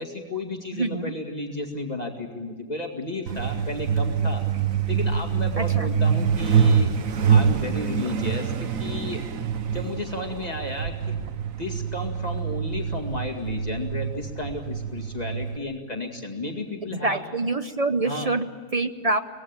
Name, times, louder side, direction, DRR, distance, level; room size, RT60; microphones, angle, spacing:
voice 1, 0.0-4.4 4.9-6.9 7.3-9.2 9.7-11.2 11.6-17.2 18.0-18.3, left 2 dB, 25° left, 1 dB, 2.2 m, -33 dB
voice 2, 0.7-1.0 5.6-5.9 16.9-19.2, right 2 dB, 35° right, 9 dB, 0.6 m, -26 dB
Truck, 3.3-15.6, right 7 dB, 65° right, 1.4 m, -25 dB
24.0 x 18.5 x 8.8 m, 1.5 s
omnidirectional pair, 1.6 m